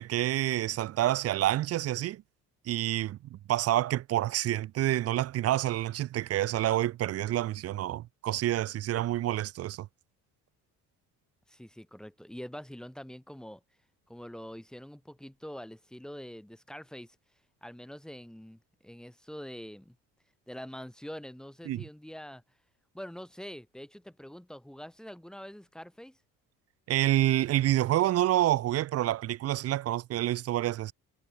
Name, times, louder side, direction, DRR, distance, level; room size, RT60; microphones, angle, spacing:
voice 1, 0.0-2.2 2.7-9.9 21.7-21.8 26.9-30.9, right 14 dB, 45° right, 0.6 m, -28 dB
voice 2, 11.5-13.6 14.1-17.2 17.6-20.0 20.5-22.4 22.9-26.2, equal, ahead, 1.6 m, -45 dB
cardioid pair, 130°, 33 cm